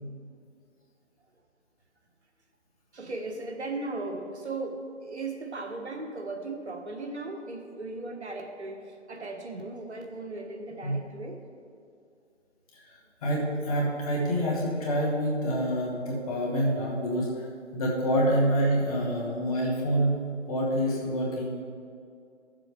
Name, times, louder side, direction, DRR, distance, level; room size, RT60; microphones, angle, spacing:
voice 1, 2.9-11.4, right 2 dB, 65° right, 3 dB, 1.3 m, -37 dB
voice 2, 12.9-17.5 17.7-20.1 20.5-21.6, equal, 30° left, -3 dB, 2.0 m, -27 dB
13.5 x 7.4 x 3.5 m, 2.4 s
figure-of-eight pair, 150°, 37 cm